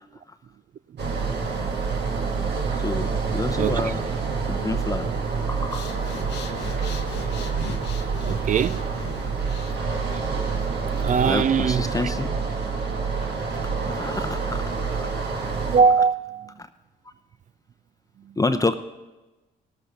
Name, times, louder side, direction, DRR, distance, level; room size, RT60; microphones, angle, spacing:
sound 1, 1.0-15.8, right 5 dB, 65° right, 1.7 m, -27 dB
voice 1, 2.8-4.0 4.5-5.1 5.5-5.9 11.2-12.3 13.9-14.6 14.9-15.1 18.4-18.8, left 2 dB, 20° left, 0.7 m, -28 dB
voice 2, 3.6-3.9 8.2-8.9 10.1-10.2 10.9-12.1 15.7-16.5 18.2-18.4, right 6 dB, 45° right, 0.4 m, -22 dB
Breathing, 5.6-11.6, left 6 dB, 75° left, 1.0 m, -41 dB
18.0 x 7.9 x 5.0 m
supercardioid pair, 50°, 18 cm